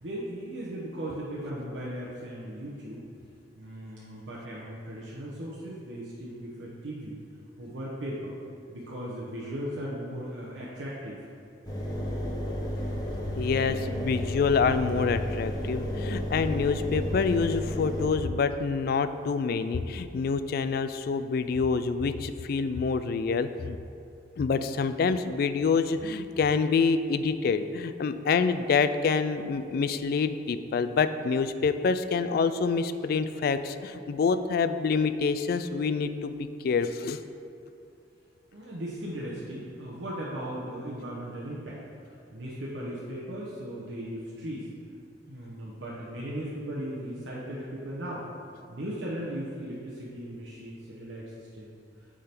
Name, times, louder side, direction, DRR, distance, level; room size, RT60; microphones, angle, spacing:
voice 1, 0.0-3.1 3.6-7.2 7.6-8.3 8.7-11.2 38.5-44.7 45.3-48.3 48.7-51.7, right 1 dB, 90° right, -6 dB, 0.9 m, -37 dB
Engine, 11.6-18.1, equal, 20° left, 1.0 m, -32 dB
voice 2, 13.4-23.8 24.4-37.2, left 5 dB, 55° left, 11 dB, 0.3 m, -27 dB
8.3 x 3.7 x 4.4 m, 2.6 s
head